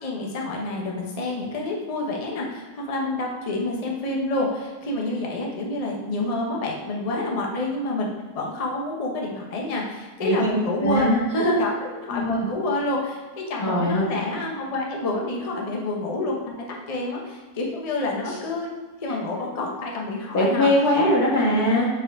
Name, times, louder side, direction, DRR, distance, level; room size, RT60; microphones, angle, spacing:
voice 1, 0.0-8.1 8.3-11.1 11.6-11.7 12.0-18.7 19.0-20.7, left 2 dB, 30° left, -1 dB, 0.9 m, -28 dB
voice 2, 10.8-11.6 12.1-12.3 13.6-14.1 20.3-21.9, equal, 80° left, -4 dB, 2.1 m, -21 dB
4.9 x 4.8 x 4.9 m, 1.4 s
omnidirectional pair, 1.6 m